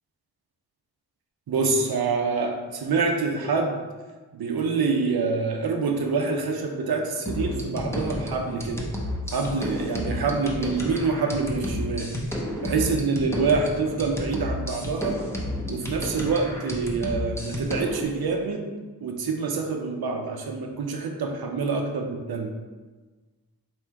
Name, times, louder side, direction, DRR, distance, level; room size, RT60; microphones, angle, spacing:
voice 1, 1.5-3.8 4.3-8.9 9.3-12.1 12.6-15.2 15.7-18.6 19.0-22.5, right 4 dB, 75° right, 3 dB, 0.7 m, -26 dB
sound 1, 7.3-18.0, left 1 dB, 5° left, 0.7 m, -31 dB
3.5 x 3.0 x 4.5 m, 1.3 s
wide cardioid pair, 85°, 37 cm